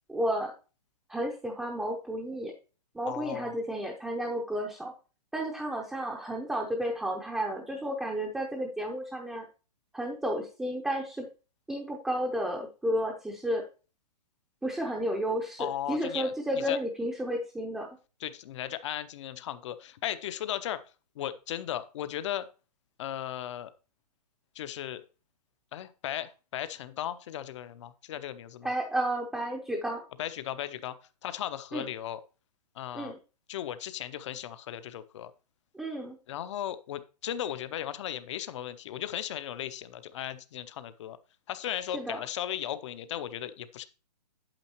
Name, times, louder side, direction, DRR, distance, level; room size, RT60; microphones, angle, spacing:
voice 1, 0.1-0.5 1.1-2.5 2.9-4.9 5.3-9.4 9.9-11.3 11.7-13.6 14.6-17.9 28.6-30.0 31.7-31.9 32.9-33.2 35.7-36.2 41.9-42.2, equal, 5° right, -1 dB, 0.6 m, -32 dB
voice 2, 3.1-3.5 15.6-16.3 16.7-16.8 18.2-20.8 21.2-22.5 23.0-23.7 24.5-25.0 25.7-28.7 30.2-30.9 31.2-32.2 32.8-33.1 33.5-35.3 36.3-41.2 41.5-43.8, left 11 dB, 45° left, 13 dB, 0.7 m, -36 dB
8.9 x 7.6 x 2.9 m, 0.33 s
hypercardioid pair, 150°, 21 cm